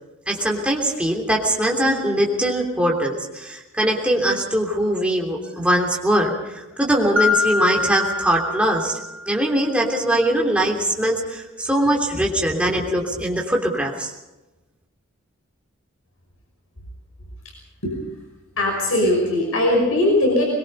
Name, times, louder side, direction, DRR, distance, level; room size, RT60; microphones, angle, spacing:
voice 1, 0.3-9.0 9.2-14.1, right 1 dB, 5° right, -1 dB, 3.2 m, -21 dB
Mallet percussion, 7.2-9.7, left 4 dB, 60° right, 1.5 m, -25 dB
voice 2, 18.6-20.4, left 1 dB, 80° left, -1 dB, 5.8 m, -19 dB
22.5 x 22.0 x 5.5 m, 1.0 s
head